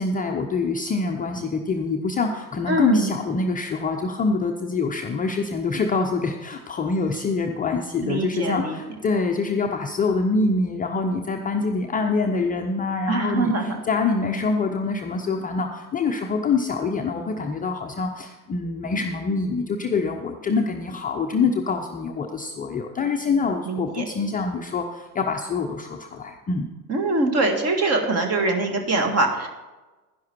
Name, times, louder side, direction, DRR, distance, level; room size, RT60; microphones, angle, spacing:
voice 1, 0.0-26.7, left 4 dB, 15° left, 3 dB, 0.7 m, -25 dB
voice 2, 2.7-3.1 8.0-8.8 13.1-13.8 23.7-24.0 26.9-29.5, right 2 dB, 30° right, 4 dB, 1.8 m, -23 dB
11.5 x 10.5 x 4.4 m, 1.2 s
figure-of-eight pair, 70°, 49 cm